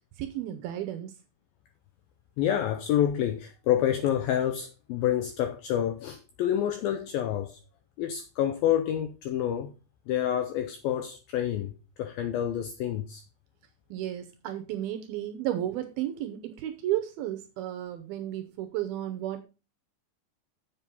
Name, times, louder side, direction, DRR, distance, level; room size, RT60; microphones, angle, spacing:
voice 1, 0.2-1.1 13.9-19.4, right 12 dB, 80° right, 2.3 m, -33 dB
voice 2, 2.4-7.6 8.0-9.7 10.1-11.7 12.0-13.2, left 10 dB, 85° left, 2.1 m, -28 dB
7.4 x 7.1 x 5.3 m
omnidirectional pair, 5.0 m